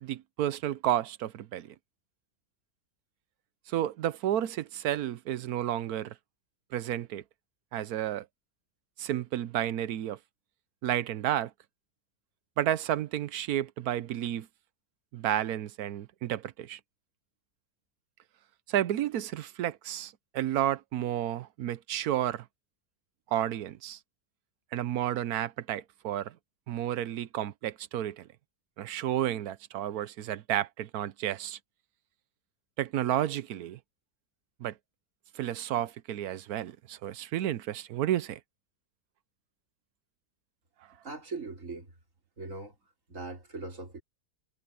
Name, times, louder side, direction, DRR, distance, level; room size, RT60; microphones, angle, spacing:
voice 1, 0.0-1.7 3.7-6.1 6.7-7.2 7.7-8.3 9.0-10.2 10.8-11.5 12.6-14.5 15.1-16.8 18.7-22.5 23.3-24.0 24.7-26.4 26.7-28.3 28.8-31.6 32.8-33.8 34.6-34.7 35.3-38.4, right 12 dB, 80° right, 1.2 m, -31 dB
voice 2, 41.0-41.9 42.4-42.8 43.1-44.0, right 3 dB, 55° right, 4.5 m, -40 dB
omnidirectional pair, 1.6 m